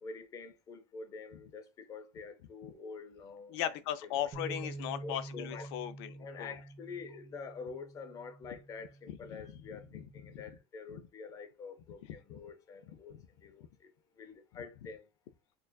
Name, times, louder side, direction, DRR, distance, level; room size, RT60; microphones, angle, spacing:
voice 1, 0.0-3.6 4.1-4.7 5.0-5.7 6.2-13.9 14.2-15.1, left 4 dB, 25° left, 0.6 m, -47 dB
voice 2, 3.5-6.5 9.1-9.6 9.9-10.4 10.9-11.0 12.3-12.4 13.1-13.2, left 11 dB, 80° left, 0.5 m, -38 dB
sound 1, 4.3-10.6, right 2 dB, 25° right, 0.6 m, -48 dB
6.4 x 2.4 x 2.3 m
cardioid pair, 155°, 13 cm